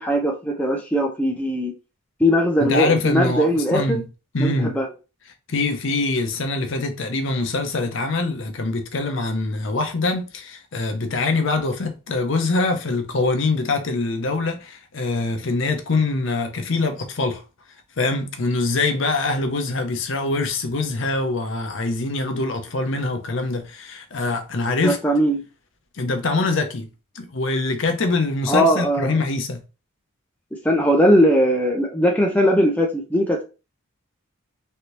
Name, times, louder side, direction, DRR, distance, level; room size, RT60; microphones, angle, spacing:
voice 1, 0.0-1.7 2.2-4.0 4.4-4.9 24.8-25.4 28.5-29.2 30.6-33.4, equal, 5° left, 0.5 m, -19 dB
voice 2, 2.6-4.1 4.3-4.7 5.5-17.4 18.0-25.0 26.0-26.9 27.1-29.6, left 3 dB, 60° left, 0.6 m, -24 dB
3.2 x 2.7 x 2.9 m
head